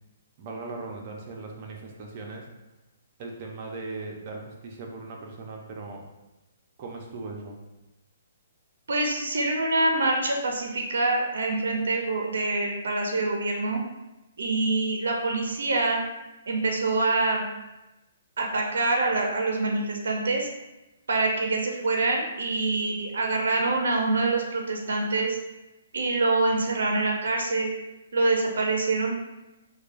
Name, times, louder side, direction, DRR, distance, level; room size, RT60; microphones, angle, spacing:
voice 1, 0.4-2.5 3.2-6.0 6.8-7.6, right 3 dB, 40° right, 0 dB, 0.7 m, -38 dB
voice 2, 8.9-13.8 14.4-16.0 16.5-17.5 18.4-20.5 21.1-25.4 25.9-27.7 28.1-29.1, right 2 dB, 80° right, 1 dB, 0.6 m, -25 dB
4.6 x 2.3 x 2.5 m, 1.0 s
hypercardioid pair, 150°, 0 cm